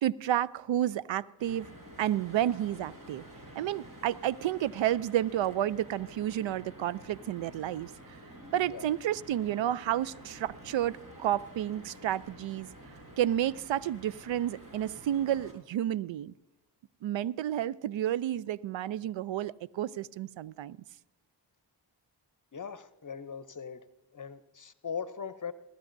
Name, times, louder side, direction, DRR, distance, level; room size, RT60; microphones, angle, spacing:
voice 1, 0.0-1.7 2.0-3.2 3.6-8.2 8.5-12.7 13.2-16.3 17.0-20.8, right 12 dB, 80° right, 0.5 m, -31 dB
sound 1, 1.4-15.5, right 1 dB, 45° right, 5.5 m, -50 dB
voice 2, 22.5-23.8 24.1-25.5, left 6 dB, 40° left, 0.8 m, -40 dB
21.5 x 12.0 x 2.6 m
cardioid pair, 45°, 45 cm